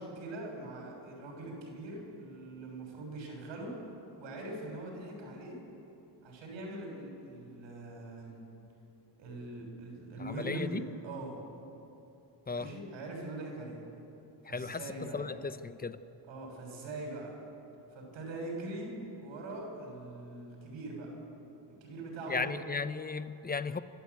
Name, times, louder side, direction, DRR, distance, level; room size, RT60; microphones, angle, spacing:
voice 1, 0.0-3.7 4.2-5.6 6.2-8.4 9.2-11.4 12.5-13.8 14.4-15.3 16.3-17.4 17.9-18.9 19.2-21.1 21.8-22.6, right 2 dB, 85° right, 0 dB, 6.7 m, -42 dB
voice 2, 10.2-10.8 12.5-12.7 14.4-16.0 22.3-23.8, left 4 dB, 20° left, 13 dB, 0.8 m, -36 dB
27.0 x 13.0 x 8.3 m, 2.9 s
cardioid pair, 90°, 44 cm